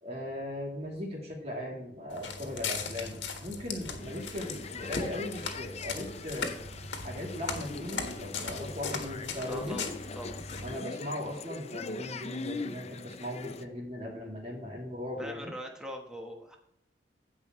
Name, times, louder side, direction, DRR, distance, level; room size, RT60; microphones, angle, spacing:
voice 1, 0.0-6.5 7.0-9.8 10.6-15.5, left 1 dB, 35° right, -2 dB, 3.0 m, -38 dB
Walk footsteps, 2.1-10.8, left 4 dB, 75° left, 1.6 m, -38 dB
sound 1, 4.0-13.6, left 3 dB, 35° left, 0.6 m, -42 dB
voice 2, 9.5-10.4 15.2-16.6, equal, 5° right, 1 dB, 1.2 m, -42 dB
16.0 x 5.4 x 3.1 m, 0.76 s
head